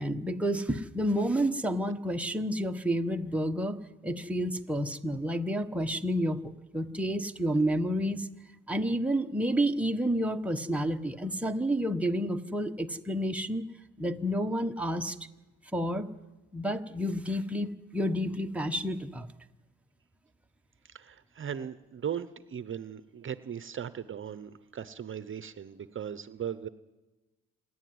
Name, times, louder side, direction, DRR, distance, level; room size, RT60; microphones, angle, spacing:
voice 1, 0.0-8.3 8.7-13.6 14.0-15.2 15.7-16.1 16.5-19.3, equal, 5° right, 4 dB, 1.2 m, -30 dB
voice 2, 20.8-26.7, right 8 dB, 40° right, 13 dB, 0.9 m, -38 dB
27.0 x 11.0 x 9.6 m, 1.1 s
cardioid pair, 90°, 30 cm